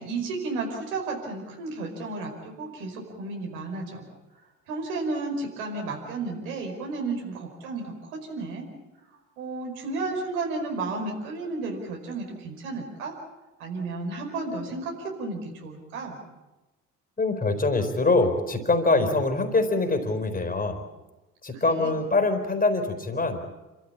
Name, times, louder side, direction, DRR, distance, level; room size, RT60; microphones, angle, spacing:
voice 1, 0.0-4.1 4.7-8.6 9.4-13.1 13.6-16.2 21.5-21.9, right 3 dB, 65° right, 1 dB, 5.3 m, -33 dB
voice 2, 17.2-20.8 21.4-23.4, left 3 dB, 20° left, 6 dB, 4.4 m, -24 dB
28.5 x 14.0 x 8.8 m, 1.1 s
figure-of-eight pair, 60°, 46 cm